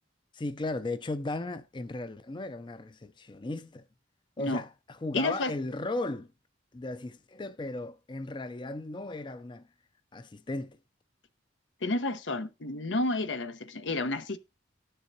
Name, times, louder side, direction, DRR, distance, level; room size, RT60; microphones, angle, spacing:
voice 1, 0.3-3.8 4.4-6.3 6.7-9.7 10.1-10.8, left 2 dB, 25° left, 0.4 m, -36 dB
voice 2, 5.1-5.5 11.8-14.4, left 2 dB, 85° left, 1.0 m, -30 dB
18.0 x 6.6 x 2.6 m
head